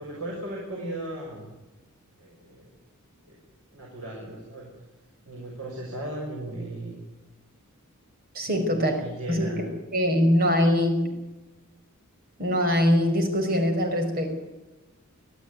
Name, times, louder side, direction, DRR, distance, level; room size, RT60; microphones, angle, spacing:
voice 1, 0.0-1.5 2.2-2.7 3.2-3.4 3.7-4.7 5.3-7.0 8.4-9.7, right 1 dB, 85° right, -2 dB, 6.5 m, -37 dB
voice 2, 8.4-8.9 9.3-9.7 9.9-11.0 12.4-14.3, equal, 45° right, 5 dB, 5.2 m, -22 dB
25.5 x 14.5 x 9.6 m, 1.1 s
head